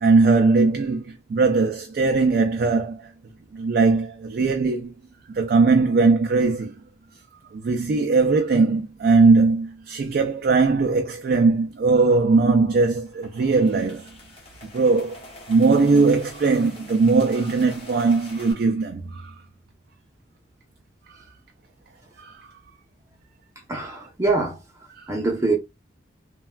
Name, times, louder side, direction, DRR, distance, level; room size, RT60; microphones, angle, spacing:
voice 1, 0.0-3.1 3.5-4.9 5.3-6.8 7.5-14.1 14.7-15.2 15.5-19.4 21.1-21.2 22.2-22.5 25.0-25.1, right 3 dB, 55° right, 0.3 m, -20 dB
sound 1, 12.9-18.5, left 2 dB, 30° left, 0.9 m, -45 dB
voice 2, 23.7-24.6 25.1-25.6, right 3 dB, 15° right, 0.6 m, -23 dB
3.3 x 2.2 x 2.2 m
head